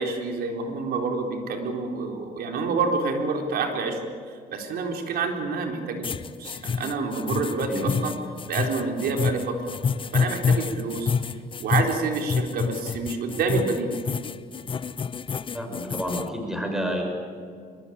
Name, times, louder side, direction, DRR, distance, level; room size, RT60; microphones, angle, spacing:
voice 1, 0.0-4.0 4.5-6.1 6.4-8.1 8.5-9.6 10.1-11.1 11.6-13.9, right 4 dB, 65° right, 3 dB, 4.1 m, -28 dB
sound 1, 6.0-16.3, left 6 dB, 30° left, 0.8 m, -28 dB
voice 2, 15.5-17.0, equal, 5° right, 2 dB, 6.2 m, -29 dB
24.0 x 22.5 x 8.8 m, 2.2 s
cardioid pair, 110°, 17 cm